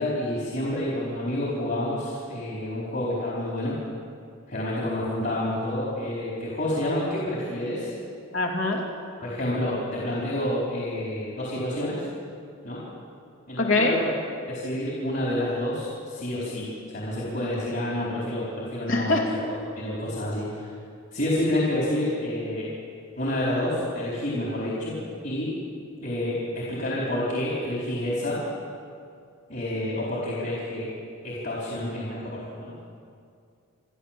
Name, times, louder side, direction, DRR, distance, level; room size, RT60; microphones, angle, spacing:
voice 1, 0.0-3.8 4.5-7.9 9.2-12.0 12.6-12.8 13.5-14.1 14.5-19.4 19.8-20.7 21.1-22.7 23.2-25.0 25.2-25.6 26.0-28.4 29.5-30.9 31.2-32.7, left 1 dB, 50° left, -6 dB, 4.4 m, -29 dB
voice 2, 8.3-8.8 13.6-14.0 18.9-19.3, left 2 dB, 70° left, 1 dB, 2.8 m, -23 dB
28.0 x 13.0 x 7.6 m, 2.3 s
head